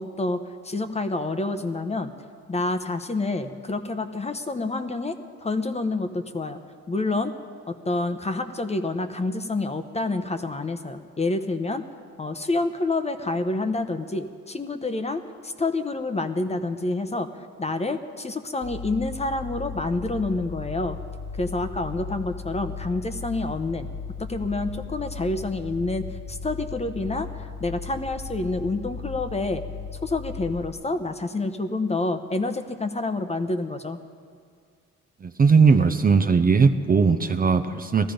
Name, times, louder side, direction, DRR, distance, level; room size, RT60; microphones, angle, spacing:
voice 1, 0.0-2.1 2.5-5.2 5.4-6.6 6.9-7.3 7.7-11.8 12.2-17.3 17.6-21.0 21.4-23.9 24.2-26.0 26.3-29.6 30.0-34.0, left 2 dB, 20° left, 8 dB, 0.9 m, -28 dB
sound 1, 18.6-30.7, left 5 dB, 40° left, 1.5 m, -36 dB
voice 2, 35.2-38.1, right 5 dB, 30° right, 8 dB, 0.7 m, -19 dB
17.5 x 14.0 x 5.2 m, 2.2 s
cardioid pair, 90°, 30 cm